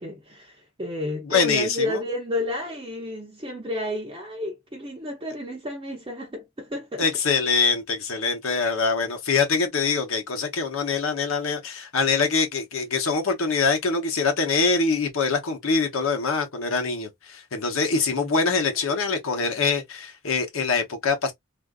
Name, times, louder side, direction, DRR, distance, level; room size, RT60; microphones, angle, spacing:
voice 1, 0.0-7.1 17.9-18.0 18.9-19.0, left 1 dB, 25° right, 0.7 m, -31 dB
voice 2, 1.2-2.0 7.0-21.3, left 4 dB, 70° left, 0.9 m, -24 dB
3.6 x 2.5 x 2.3 m
head